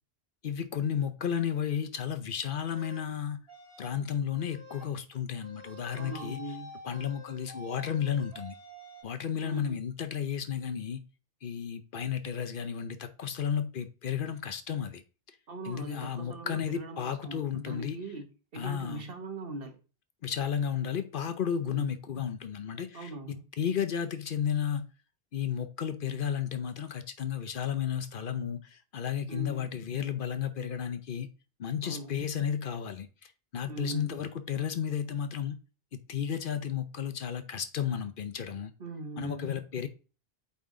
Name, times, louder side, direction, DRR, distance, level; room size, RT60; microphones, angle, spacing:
voice 1, 0.4-3.4 3.8-6.4 6.8-8.6 9.0-11.0 11.4-15.0 15.6-18.0 18.5-19.0 20.2-24.9 25.3-31.3 31.6-35.6 35.9-38.7 39.2-39.9, left 8 dB, 60° left, 0.8 m, -33 dB
sound 1, 2.6-3.0 3.5-4.0 4.3-4.9 5.4-9.0, equal, 20° left, 4.1 m, -48 dB
voice 2, 5.9-6.7 9.4-9.8 15.5-18.3 18.5-19.8 21.6-21.9 22.9-23.4 29.3-29.7 31.8-32.1 33.7-34.2 38.8-39.5, right 2 dB, 65° right, 1.3 m, -41 dB
8.3 x 3.5 x 3.7 m
omnidirectional pair, 1.0 m